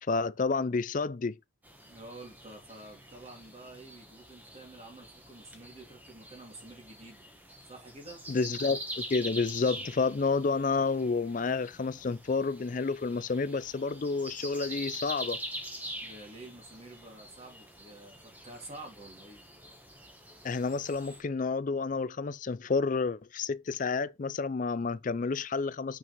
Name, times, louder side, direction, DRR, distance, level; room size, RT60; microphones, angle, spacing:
voice 1, 0.1-1.4 8.3-15.4 20.4-26.0, left 4 dB, 40° left, 0.4 m, -30 dB
sound 1, 1.6-21.2, right 1 dB, 10° right, 1.2 m, -45 dB
voice 2, 1.9-7.3 7.6-8.2 16.0-19.4, right 2 dB, 30° right, 3.1 m, -49 dB
6.2 x 6.2 x 4.5 m
head